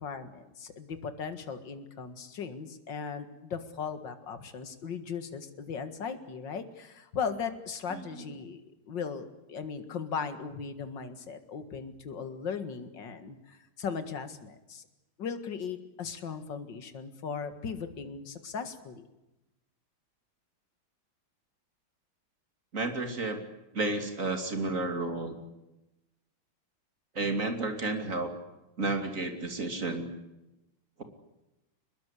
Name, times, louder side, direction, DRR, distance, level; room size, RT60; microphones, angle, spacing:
voice 1, 0.0-8.6 8.9-14.8 15.2-19.0, left 6 dB, 65° left, 9 dB, 2.5 m, -38 dB
voice 2, 7.9-8.2 22.7-23.4 23.7-25.3 27.1-28.3 28.8-30.1, right 2 dB, 40° right, 6 dB, 3.1 m, -31 dB
23.5 x 21.5 x 8.3 m, 0.96 s
omnidirectional pair, 2.2 m